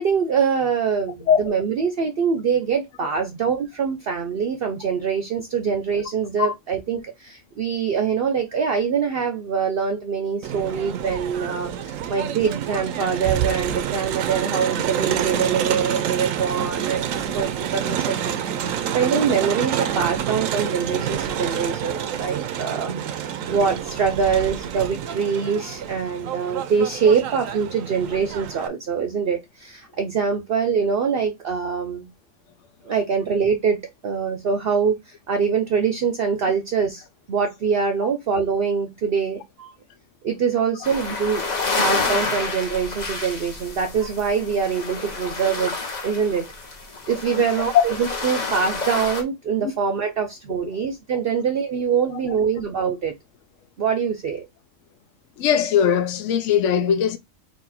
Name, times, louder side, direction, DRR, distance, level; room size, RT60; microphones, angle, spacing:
voice 1, 0.0-17.1 17.3-32.1 32.8-39.7 40.2-41.4 41.8-45.7 46.0-46.5 47.1-53.1 53.8-54.4, right 6 dB, 55° right, 0.8 m, -24 dB
Crowd, 10.4-28.7, right 9 dB, 85° right, 1.0 m, -28 dB
sound 1, 40.8-49.2, left 3 dB, 35° left, 1.0 m, -29 dB
voice 2, 55.4-57.2, left 8 dB, 70° left, 0.9 m, -20 dB
4.4 x 2.6 x 4.1 m
omnidirectional pair, 1.4 m